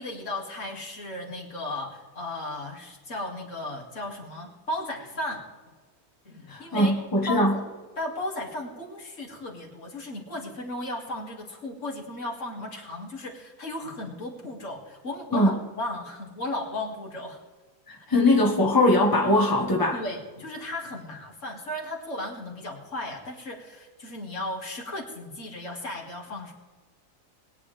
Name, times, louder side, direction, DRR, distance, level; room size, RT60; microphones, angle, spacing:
voice 1, 0.0-5.4 6.2-6.9 7.3-7.6 8.0-17.4 19.9-26.5, left 1 dB, 60° left, -2 dB, 2.7 m, -35 dB
voice 2, 6.5-7.6 15.3-15.6 17.9-20.0, left 1 dB, 15° left, 0 dB, 1.6 m, -21 dB
21.5 x 9.8 x 3.4 m, 1.4 s
omnidirectional pair, 1.4 m